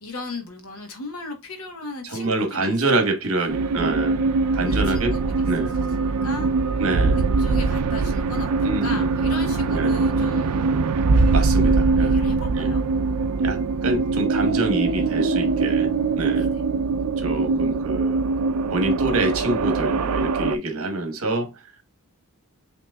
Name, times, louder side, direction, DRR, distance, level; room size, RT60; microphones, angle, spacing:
voice 1, 0.0-3.0 3.3-3.5 4.6-5.5 5.8-6.5 7.1-10.7 11.4-12.8 16.3-16.6 17.3-17.8, left 2 dB, 75° left, 1.1 m, -37 dB
voice 2, 2.0-4.2 4.5-5.2 5.5-5.7 6.8-7.2 8.6-9.0 9.7-9.9 11.3-12.2 12.6-12.7 13.4-15.9 16.2-16.5 17.2-18.3 18.7-21.5, right 2 dB, 65° right, 1.1 m, -26 dB
sound 1, 3.5-20.6, right 4 dB, 85° right, 0.4 m, -22 dB
6.0 x 2.9 x 2.3 m
head